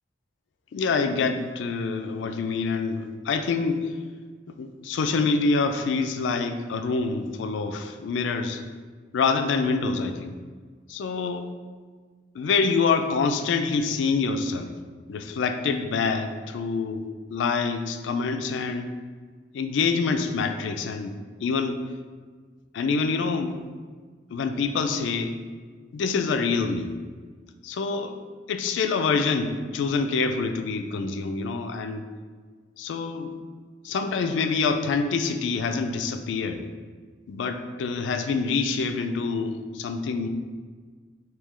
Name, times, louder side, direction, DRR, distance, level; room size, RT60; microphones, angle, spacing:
voice 1, 0.7-3.9 4.6-8.6 9.1-10.4 10.9-11.5 12.3-14.7 15.1-18.9 19.5-21.1 21.4-21.8 22.7-23.7 24.3-25.4 25.9-26.9 27.6-28.1 28.5-32.0 32.8-33.3 33.8-36.7 37.3-40.3, left 4 dB, 80° left, 7 dB, 0.3 m, -26 dB
3.1 x 2.8 x 3.6 m, 1.5 s
head